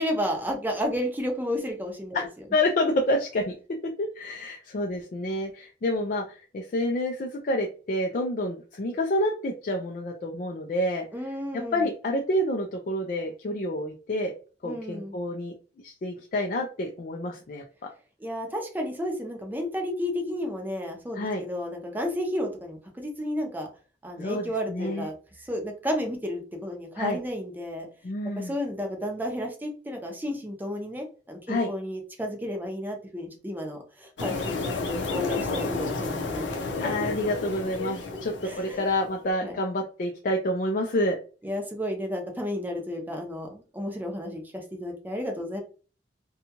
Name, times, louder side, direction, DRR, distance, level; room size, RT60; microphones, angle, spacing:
voice 1, 0.0-2.3 11.1-11.9 14.6-15.1 18.2-23.7 24.0-25.1 25.5-27.9 28.4-36.9 38.4-38.8 39.4-39.6 41.4-45.6, equal, 10° right, 2 dB, 0.6 m, -32 dB
voice 2, 2.5-3.5 4.0-11.0 11.5-14.3 14.6-15.5 15.8-17.6 21.1-21.4 24.2-25.1 27.0-27.2 28.0-28.5 31.5-31.7 36.8-41.2, left 1 dB, 50° left, 2 dB, 0.4 m, -28 dB
sound 1, 34.2-39.1, left 3 dB, 85° left, 0.6 m, -31 dB
2.7 x 2.3 x 2.8 m, 0.37 s
head